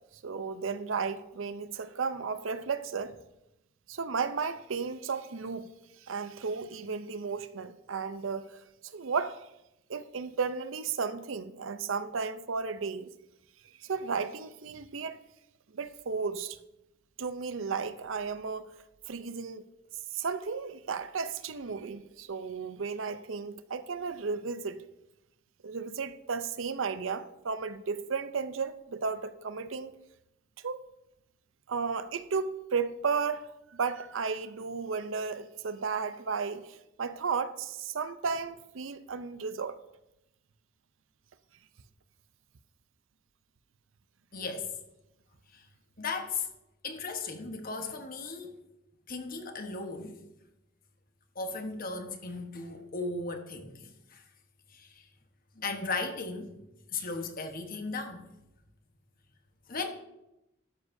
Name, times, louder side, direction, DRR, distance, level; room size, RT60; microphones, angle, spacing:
voice 1, 0.2-3.2 3.9-5.7 6.0-9.4 9.9-13.1 13.8-15.2 15.7-16.6 17.2-18.7 19.1-19.7 20.1-24.8 25.6-29.9 30.6-30.8 31.7-39.8, right 5 dB, 90° right, 0.6 m, -34 dB
voice 2, 44.3-44.7 45.5-45.6 46.0-46.5 46.8-48.6 49.1-50.1 51.3-54.2 54.7-55.1 55.5-56.5 56.9-58.2 59.7-59.9, left 4 dB, 45° left, 1.2 m, -36 dB
13.0 x 9.6 x 2.7 m
head